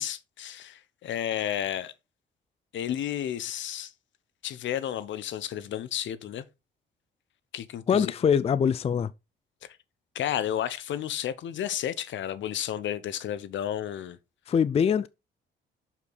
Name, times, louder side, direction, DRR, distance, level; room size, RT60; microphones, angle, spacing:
voice 1, 0.0-1.9 2.7-3.9 4.4-6.4 7.5-8.1 10.1-14.2, left 10 dB, 70° left, 0.8 m, -32 dB
voice 2, 7.9-9.1 14.5-15.1, left 7 dB, 30° left, 0.4 m, -23 dB
6.7 x 5.8 x 4.0 m
cardioid pair, 90°, 20 cm